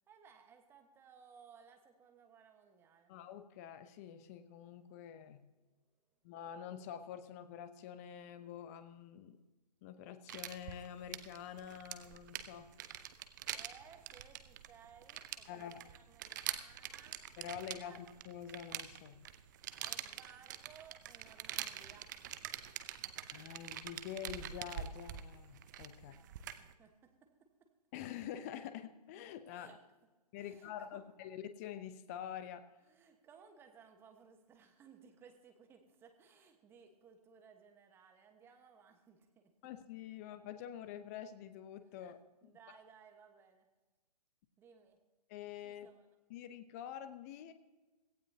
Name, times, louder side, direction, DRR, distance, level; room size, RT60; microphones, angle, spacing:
voice 1, 0.1-3.1 13.5-17.2 17.5-18.0 19.8-22.1 25.9-27.7 29.5-29.8 30.4-31.0 32.8-39.5 42.4-43.7 44.6-45.0 45.6-46.1, right 6 dB, 10° right, 5 dB, 1.2 m, -61 dB
voice 2, 3.1-5.4 6.2-9.4 9.8-12.7 15.5-15.8 17.4-19.3 23.3-26.1 27.9-29.7 30.3-32.6 39.6-42.6 45.3-45.9 46.3-47.5, left 9 dB, 25° left, 11 dB, 0.7 m, -47 dB
sound 1, 10.3-26.7, right 11 dB, 30° right, 0.6 m, -45 dB
17.0 x 15.0 x 2.8 m, 1.2 s
figure-of-eight pair, 135°, 21 cm